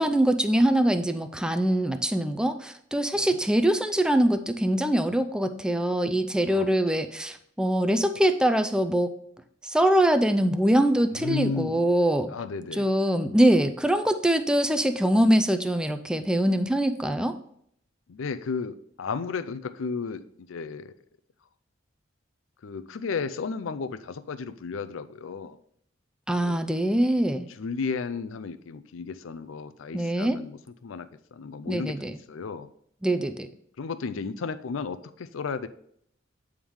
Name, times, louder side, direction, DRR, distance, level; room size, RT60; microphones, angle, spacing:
voice 1, 0.0-9.1 9.6-12.3 12.8-17.4 26.3-27.5 29.9-30.4 31.7-32.1 33.0-33.5, right 1 dB, 5° right, 9 dB, 0.4 m, -23 dB
voice 2, 11.1-11.9 12.3-12.9 18.1-20.9 22.6-25.6 26.4-26.6 27.5-32.7 33.8-35.7, left 5 dB, 90° left, 12 dB, 0.5 m, -34 dB
8.7 x 3.6 x 4.7 m, 0.69 s
head